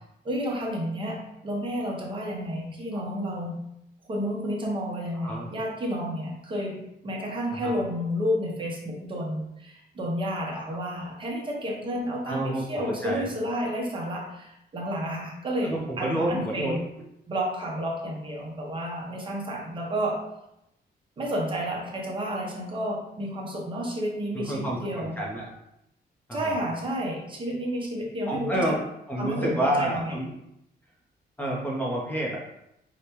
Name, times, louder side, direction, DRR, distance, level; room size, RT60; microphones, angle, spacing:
voice 1, 0.2-3.5 4.1-6.8 7.0-16.8 17.3-20.2 21.2-25.2 26.3-28.7 29.2-30.1, equal, 30° right, -2 dB, 0.7 m, -31 dB
voice 2, 5.1-5.4 7.5-7.7 12.3-13.3 15.6-16.8 24.3-25.5 26.3-26.6 28.3-28.8 29.1-30.3 31.4-32.4, right 1 dB, 10° left, -4 dB, 0.5 m, -29 dB
5.0 x 2.1 x 2.9 m, 0.82 s
wide cardioid pair, 175°, 17 cm